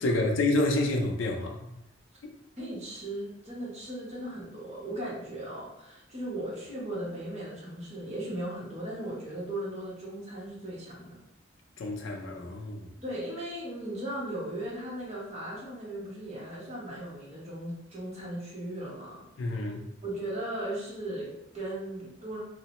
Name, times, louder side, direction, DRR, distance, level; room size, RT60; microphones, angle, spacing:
voice 1, 0.0-1.7 11.8-12.9 19.4-19.8, left 2 dB, 90° left, 0.5 m, -28 dB
voice 2, 2.6-11.1 13.0-19.2 19.6-19.7 20.0-22.4, right 1 dB, 35° right, 1.1 m, -37 dB
2.9 x 2.0 x 2.9 m
head